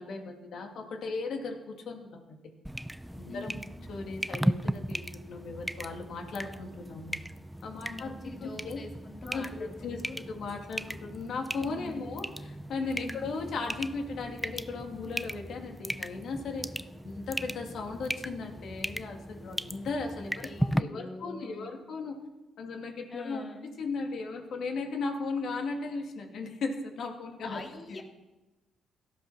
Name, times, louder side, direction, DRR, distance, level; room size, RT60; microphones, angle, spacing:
voice 1, 0.0-2.5 3.1-3.5 3.9-7.2 7.6-8.1 8.4-8.8 9.3-16.7 17.0-22.1 22.6-27.6 27.9-28.0, left 4 dB, 65° left, 3 dB, 2.8 m, -37 dB
sound 1, 2.6-20.8, equal, 5° right, 0.5 m, -37 dB
voice 2, 3.3-3.8 7.8-10.2 11.7-12.3 13.0-13.4 20.4-21.8 23.1-23.7 27.4-28.0, left 2 dB, 40° left, 2 dB, 2.9 m, -44 dB
17.5 x 14.0 x 5.9 m, 1.1 s
cardioid pair, 90°, 0 cm